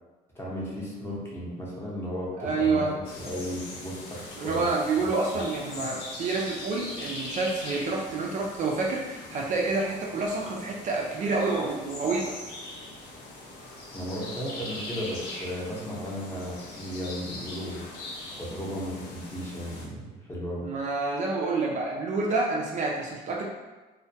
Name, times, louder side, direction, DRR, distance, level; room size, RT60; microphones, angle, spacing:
voice 1, 0.3-5.4 5.8-5.9 13.9-17.8 18.4-20.7, equal, 15° left, -6 dB, 0.7 m, -35 dB
voice 2, 2.4-2.9 4.4-12.3 20.6-23.4, right 3 dB, 45° right, -1 dB, 0.4 m, -28 dB
sound 1, 3.0-19.9, left 2 dB, 75° left, 0.6 m, -41 dB
2.2 x 2.1 x 2.7 m, 1.2 s
cardioid pair, 110°, 17 cm